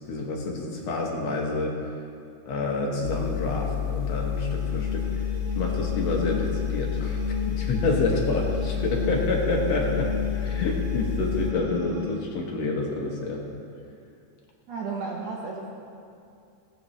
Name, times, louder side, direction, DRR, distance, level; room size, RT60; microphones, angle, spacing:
voice 1, 0.1-1.7 2.5-5.1 5.6-7.2 7.5-13.4, left 2 dB, 60° left, -1 dB, 1.9 m, -28 dB
sound 1, 3.0-11.5, left 9 dB, 90° left, 2.6 m, -30 dB
sound 2, 4.3-12.2, left 3 dB, 40° right, 1.7 m, -34 dB
voice 2, 14.7-15.7, right 4 dB, 75° right, -2 dB, 1.6 m, -33 dB
18.0 x 8.2 x 3.2 m, 2.5 s
omnidirectional pair, 4.1 m